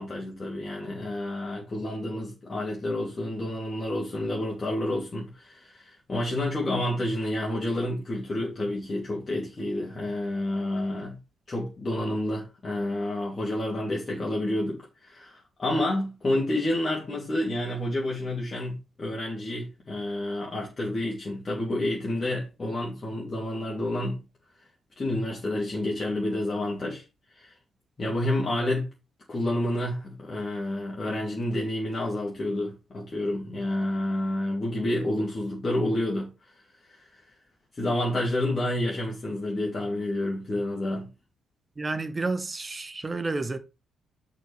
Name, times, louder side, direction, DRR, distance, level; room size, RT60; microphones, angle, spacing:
voice 1, 0.0-11.2 11.5-24.2 25.0-27.0 27.3-27.5 28.0-28.9 29.3-36.5 36.9-37.2 37.7-41.1, left 1 dB, 30° left, 2.8 m, -29 dB
voice 2, 41.8-43.6, right 3 dB, 25° right, 1.4 m, -30 dB
6.2 x 5.4 x 6.2 m
figure-of-eight pair, 40°, 0 cm